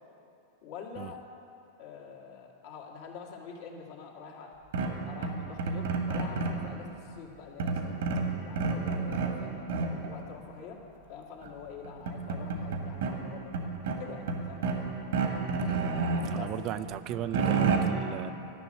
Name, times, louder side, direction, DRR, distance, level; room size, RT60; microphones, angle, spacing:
voice 1, 0.6-1.2 1.8-4.6 5.1-8.0 8.4-9.6 10.1-10.8 11.1-13.7 14.0-14.7 16.3-16.5, left 6 dB, 60° left, -1 dB, 2.0 m, -45 dB
sound 1, 4.7-6.7 7.6-9.4 9.7-10.1 11.4-11.5 11.8-13.1 13.5-14.8 15.1-16.4 16.8-17.8, right 4 dB, 75° right, 1.6 m, -30 dB
voice 2, 16.2-18.3, right 11 dB, 45° right, 13 dB, 0.4 m, -36 dB
11.5 x 6.2 x 8.9 m, 2.7 s
hypercardioid pair, 105°, 0 cm